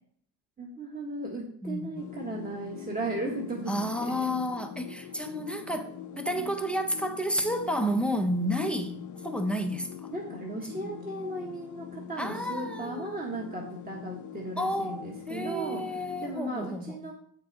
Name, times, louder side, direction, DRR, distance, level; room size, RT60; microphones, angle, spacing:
voice 1, 0.6-3.7 4.0-4.3 6.1-6.5 10.1-17.1, right 2 dB, 20° right, 1.2 m, -36 dB
voice 2, 1.6-2.0 3.7-10.1 10.7-11.0 12.2-13.3 14.6-17.0, equal, ahead, 0.6 m, -31 dB
sound 1, 2.0-16.4, left 9 dB, 40° left, 0.7 m, -43 dB
8.4 x 5.9 x 4.0 m
cardioid pair, 135°, 49 cm